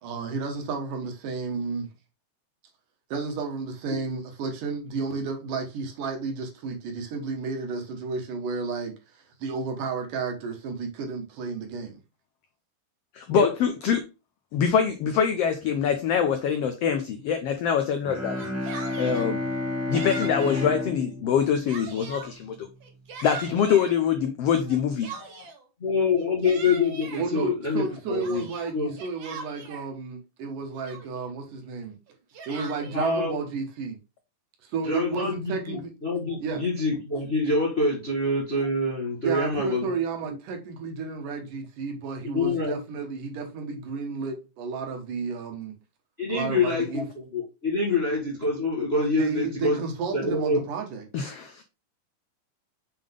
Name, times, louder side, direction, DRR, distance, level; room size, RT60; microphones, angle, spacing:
voice 1, 0.0-1.9 3.1-12.0 27.2-32.0 32.5-34.0 34.6-35.9 36.4-36.6 39.2-45.7 46.3-47.0 49.2-51.0, right 4 dB, 80° right, 2.9 m, -32 dB
voice 2, 13.1-14.1 14.5-18.4 19.0-19.4 19.9-22.7 23.2-25.4 51.1-51.6, left 7 dB, 85° left, 1.3 m, -24 dB
Bowed string instrument, 18.0-22.3, left 2 dB, 10° right, 0.7 m, -31 dB
Yell, 18.2-19.3 19.9-20.7 21.2-22.3 22.8-23.9 24.7-25.6 26.2-27.3 27.8-29.9 30.5-30.6 30.8-31.3 32.1-33.1, right 4 dB, 65° right, 1.2 m, -40 dB
voice 3, 25.8-28.4 28.7-29.0 32.9-33.4 34.8-39.9 40.2-40.3 42.2-42.8 46.2-49.9 50.1-50.6, left 3 dB, 40° left, 0.9 m, -26 dB
6.8 x 3.8 x 3.6 m
omnidirectional pair, 3.7 m